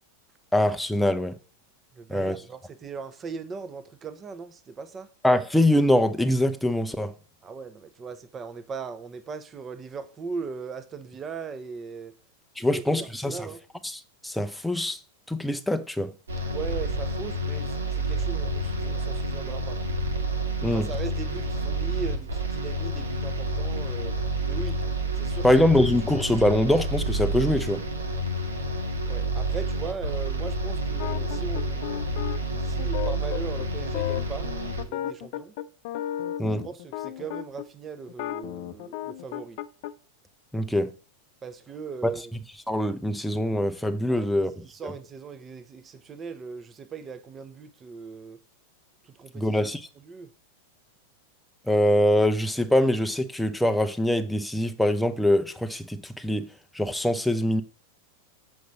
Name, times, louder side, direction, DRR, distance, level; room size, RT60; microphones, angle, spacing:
voice 1, 0.5-1.3 2.1-2.4 5.2-7.1 12.6-13.4 13.8-15.0 15.3-16.1 20.6-20.9 25.4-27.8 36.4-36.7 40.5-40.9 42.0-42.1 42.7-44.6 49.3-49.8 51.7-57.6, left 1 dB, ahead, 0.7 m, -23 dB
voice 2, 2.0-5.1 7.4-12.1 12.6-13.6 16.5-19.8 20.7-24.2 24.4-24.8 25.2-25.5 29.1-32.0 32.6-34.5 34.9-35.5 36.6-39.6 41.4-42.3 44.1-48.4 49.0-49.6 50.0-50.3, right 5 dB, 20° right, 1.0 m, -39 dB
sound 1, 16.3-34.8, right 1 dB, 75° right, 1.8 m, -29 dB
sound 2, 31.0-37.7 38.1-39.9, left 12 dB, 50° left, 0.7 m, -34 dB
7.7 x 5.2 x 7.0 m
figure-of-eight pair, 90°, 0 cm